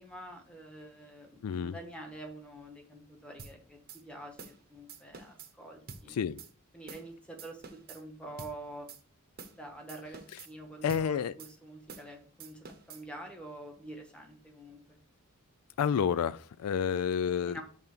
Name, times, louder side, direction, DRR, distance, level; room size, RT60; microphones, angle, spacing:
voice 1, 0.0-6.2 6.7-8.9 9.5-15.0 17.4-17.6, right 1 dB, 5° left, 1.2 m, -47 dB
voice 2, 1.4-1.8 6.1-6.4 10.8-11.3 15.8-17.6, left 7 dB, 85° left, 0.3 m, -30 dB
sound 1, 3.4-3.6 3.9-4.0 4.4-4.6 4.9-5.5 5.9-6.0 6.4-6.5 6.9-7.1 7.4-8.0 8.4-8.6 8.9-9.0 9.4-9.6 9.9-10.5 10.9-11.1 11.4-11.5 11.9-12.1 12.4-13.0, right 5 dB, 45° right, 0.8 m, -47 dB
5.4 x 3.5 x 5.8 m
head